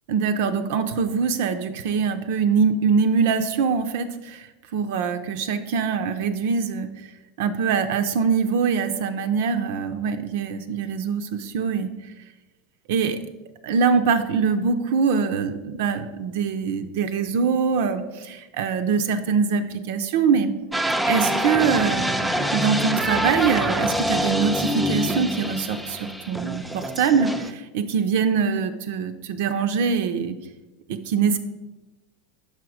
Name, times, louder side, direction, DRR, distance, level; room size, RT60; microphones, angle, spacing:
voice 1, 0.1-4.5 4.7-6.9 7.4-11.9 12.9-13.2 13.6-20.5 21.1-22.2 22.5-30.4 30.9-31.4, right 6 dB, 65° right, 7 dB, 0.4 m, -23 dB
sound 1, 20.7-27.5, equal, 5° right, 0.5 m, -25 dB
5.6 x 4.8 x 4.9 m, 1.1 s
hypercardioid pair, 90°, 0 cm